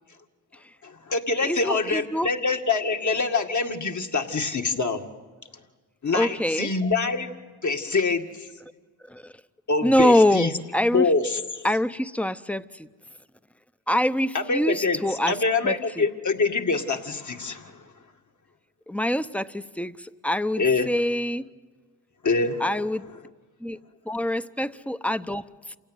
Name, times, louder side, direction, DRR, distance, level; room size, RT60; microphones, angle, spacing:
voice 1, 0.8-5.0 6.0-7.3 7.6-8.5 9.7-10.5 10.9-11.6 14.3-17.9 20.6-20.9 22.2-22.6, left 4 dB, 45° left, 4 dB, 2.2 m, -25 dB
voice 2, 1.4-2.3 6.1-6.7 9.1-9.3 9.8-11.1 11.6-12.9 13.9-15.4 15.6-16.0 18.9-21.5 22.6-23.0 23.6-23.8 24.1-25.8, left 1 dB, 5° left, 13 dB, 0.9 m, -25 dB
28.0 x 17.0 x 9.4 m, 1.4 s
supercardioid pair, 45°, 39 cm